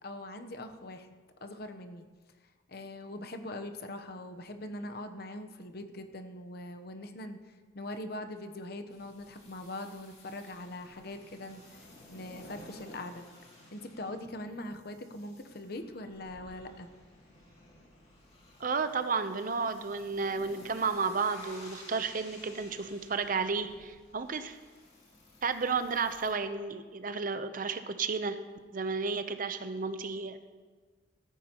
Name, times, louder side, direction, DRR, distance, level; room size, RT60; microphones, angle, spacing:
voice 1, 0.0-2.0 2.7-13.3 13.7-16.9, left 1 dB, 55° left, 8 dB, 0.9 m, -42 dB
sound 1, 8.9-26.3, left 1 dB, 35° left, 2.5 m, -55 dB
voice 2, 18.6-24.6 25.4-28.4 28.7-30.4, right 5 dB, 45° right, 10 dB, 0.7 m, -32 dB
14.0 x 14.0 x 3.0 m, 1.4 s
head